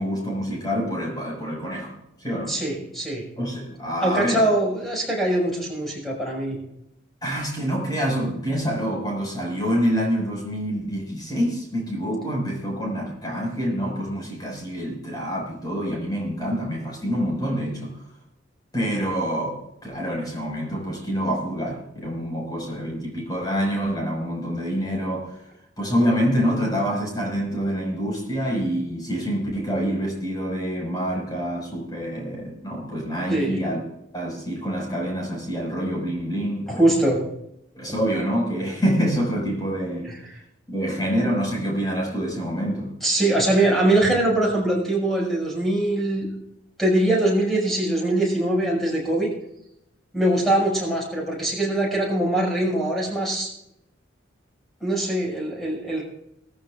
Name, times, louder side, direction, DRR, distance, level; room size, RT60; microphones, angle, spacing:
voice 1, 0.0-2.5 3.4-4.4 7.2-18.0 18.7-25.4 25.8-33.8 34.1-36.8 37.7-40.1 40.7-42.9, equal, 20° left, -1 dB, 5.5 m, -26 dB
voice 2, 2.5-3.2 4.0-6.6 33.3-33.6 36.7-37.2 40.0-40.4 43.0-46.3 46.8-49.3 50.1-53.5 54.8-56.0, right 1 dB, ahead, -3 dB, 6.0 m, -22 dB
19.5 x 14.5 x 2.5 m, 0.82 s
head